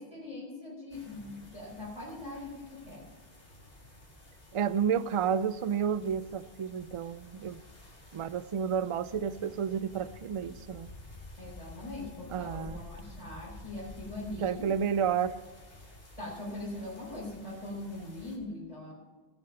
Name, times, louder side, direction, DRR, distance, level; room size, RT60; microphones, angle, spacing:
voice 1, 0.0-3.1 11.4-14.7 16.2-18.9, left 2 dB, 35° left, 4.0 m, -41 dB
sound 1, 0.9-18.4, left 1 dB, 70° left, 2.5 m, -51 dB
voice 2, 4.5-7.6 8.1-10.9 12.3-12.8 14.4-15.4, right 7 dB, 55° right, 0.3 m, -31 dB
18.5 x 6.7 x 5.3 m
omnidirectional pair, 1.0 m